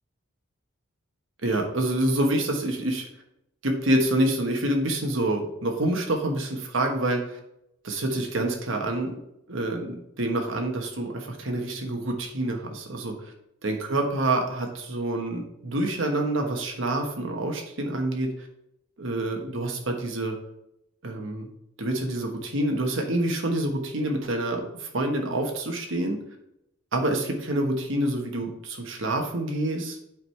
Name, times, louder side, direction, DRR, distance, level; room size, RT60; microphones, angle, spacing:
voice 1, 1.4-3.0 3.6-7.4 7.8-9.2 9.5-13.3 13.6-18.3 19.0-20.4 21.0-21.5 21.8-26.2 26.9-30.0, right 1 dB, 70° right, 3 dB, 1.2 m, -27 dB
8.4 x 4.7 x 3.3 m, 0.80 s
head